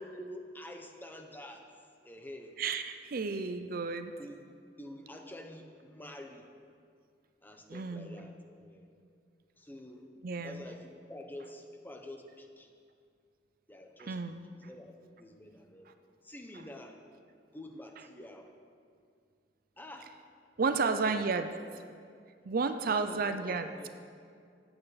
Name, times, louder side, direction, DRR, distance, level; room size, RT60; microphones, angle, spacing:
voice 1, 0.0-1.8 2.0-2.6 4.2-4.4 4.8-6.5 7.4-8.9 9.6-10.1 10.4-12.7 13.7-14.2 14.5-15.9 16.2-17.0 17.5-18.5 19.8-20.2 20.7-21.2 21.8-22.0 22.9-23.9, left 1 dB, 10° left, 4 dB, 0.8 m, -48 dB
voice 2, 2.6-4.1 7.7-8.2 10.2-10.6 14.0-14.4 20.6-21.5 22.4-23.9, right 4 dB, 55° right, 9 dB, 0.5 m, -32 dB
14.5 x 8.8 x 4.1 m, 2.3 s
head